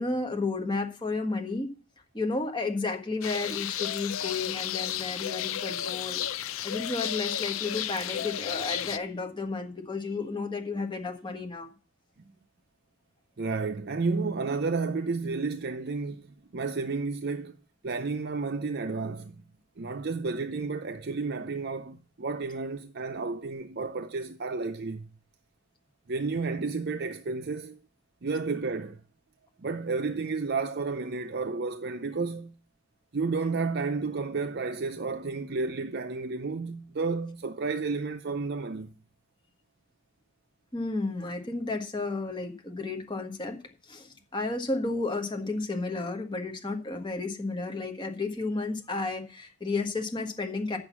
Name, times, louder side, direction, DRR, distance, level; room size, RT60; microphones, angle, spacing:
voice 1, 0.0-1.7 2.1-6.2 6.6-11.7 40.7-43.6 43.8-50.8, left 3 dB, 20° left, 1.5 m, -32 dB
sound 1, 3.2-9.0, left 10 dB, 70° left, 0.5 m, -33 dB
voice 2, 13.4-17.6 17.8-19.4 19.8-25.1 26.1-27.8 28.2-29.0 29.6-32.5 33.1-38.9, right 4 dB, 50° right, 0.5 m, -31 dB
8.7 x 6.5 x 7.2 m
head